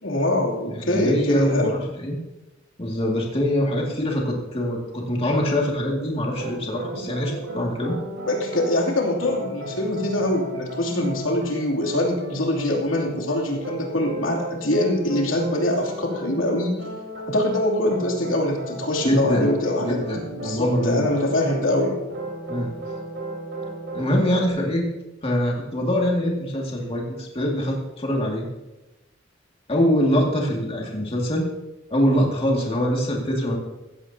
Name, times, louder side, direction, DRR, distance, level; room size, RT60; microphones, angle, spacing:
voice 1, 0.0-1.7 6.9-7.4 8.3-16.8 17.3-20.0 20.3-22.0, left 1 dB, 85° left, 0 dB, 2.9 m, -23 dB
voice 2, 0.8-2.2 2.8-8.0 19.0-19.5 19.8-21.1 22.5-22.7 23.9-24.9 25.2-28.4 29.7-31.5 31.9-33.6, equal, 30° left, -1 dB, 2.3 m, -24 dB
sound 1, 6.3-8.7 9.2-24.5, right 2 dB, 80° right, 4.2 m, -35 dB
15.5 x 15.5 x 2.9 m, 1.0 s
head